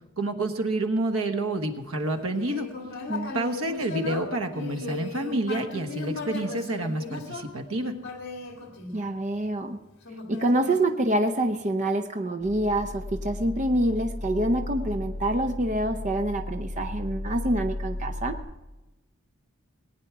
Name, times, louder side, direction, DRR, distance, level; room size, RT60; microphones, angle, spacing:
voice 1, 0.2-2.7 3.3-7.9, right 2 dB, 85° right, 6 dB, 1.3 m, -28 dB
Human voice, 2.1-9.5 10.0-11.5, left 4 dB, 55° left, 1.8 m, -37 dB
voice 2, 8.9-9.8 10.3-18.4, right 1 dB, 35° right, 7 dB, 0.6 m, -26 dB
sound 1, 12.4-18.4, left 1 dB, 30° left, 4.0 m, -35 dB
19.5 x 9.6 x 4.8 m, 1.1 s
head